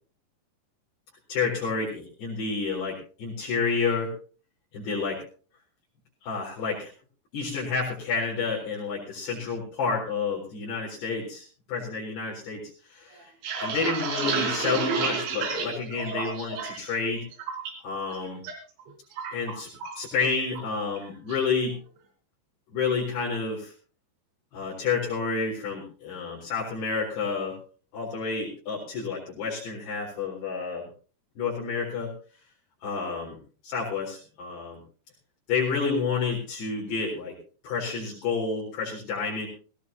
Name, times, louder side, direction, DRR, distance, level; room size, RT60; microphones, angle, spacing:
voice 1, 1.3-4.1 4.7-5.2 6.2-6.9 7.3-12.6 12.9-13.2 13.6-17.3 17.8-18.4 19.3-19.7 20.0-21.8 22.7-23.7 24.5-27.5 27.9-30.9 31.4-32.1 32.8-33.4 33.6-34.8 35.5-37.3 37.6-39.5, left 5 dB, 60° left, -6 dB, 6.1 m, -29 dB
sound 1, 13.2-16.9 17.2-17.7 18.1-18.5 18.8-20.1 20.4-20.6 21.0-21.4, right 5 dB, 90° right, 5.7 m, -31 dB
19.5 x 17.0 x 2.9 m, 0.39 s
omnidirectional pair, 5.3 m